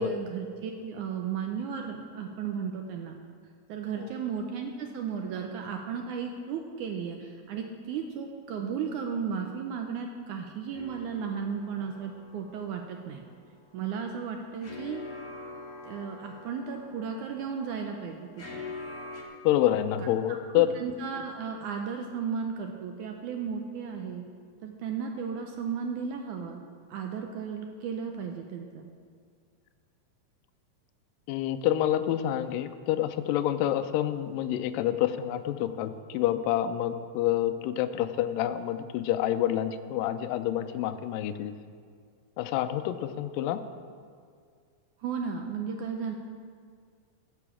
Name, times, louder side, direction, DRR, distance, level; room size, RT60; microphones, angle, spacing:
voice 1, 0.0-3.2 3.7-13.2 13.7-15.0 15.8-18.6 20.3-24.2 24.6-26.6 26.9-28.9 45.0-46.1, right 6 dB, 80° right, 3 dB, 1.8 m, -35 dB
sound 1, 10.7-19.2, left 3 dB, 50° left, 0.9 m, -45 dB
voice 2, 19.4-20.7 31.3-41.5 42.4-43.6, left 12 dB, 80° left, 9 dB, 2.2 m, -28 dB
15.0 x 7.0 x 7.1 m, 2.1 s
omnidirectional pair, 4.3 m